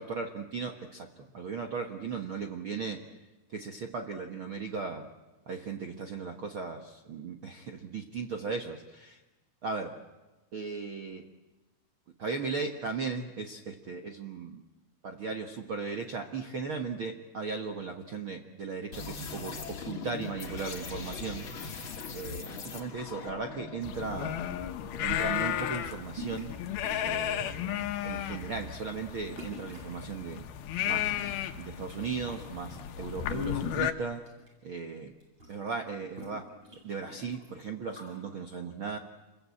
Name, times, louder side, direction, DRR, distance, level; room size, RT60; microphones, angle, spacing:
voice 1, 0.0-3.0 3.5-5.1 5.5-9.2 9.6-9.9 10.5-11.2 12.2-14.6 15.0-21.5 22.1-24.3 25.0-26.5 27.0-30.5 30.8-31.1 31.6-34.2 34.6-35.1 35.5-36.5 36.8-39.0, right 5 dB, 60° right, 4 dB, 1.3 m, -37 dB
sound 1, 18.9-25.1, left 5 dB, 40° left, 2.3 m, -41 dB
sound 2, 23.8-33.9, left 11 dB, 75° left, 3.0 m, -34 dB
sound 3, 26.1-26.6 26.8-27.7 28.2-28.4 29.4-29.9 30.8-32.0 32.2-33.4 33.8-34.5 34.8-34.9 35.1-38.2, equal, 30° right, 8.2 m, -47 dB
28.0 x 22.5 x 8.5 m, 1.1 s
omnidirectional pair, 4.4 m